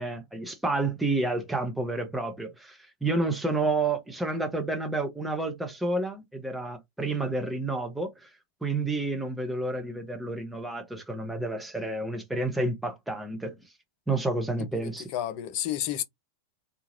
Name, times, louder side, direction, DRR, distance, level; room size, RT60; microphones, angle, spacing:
voice 1, 0.0-8.3 8.6-13.5 14.1-15.1, right 2 dB, 5° right, 0.8 m, -30 dB
voice 2, 14.7-16.0, left 12 dB, 45° left, 0.5 m, -31 dB
2.8 x 2.3 x 2.9 m
figure-of-eight pair, 90°, 0 cm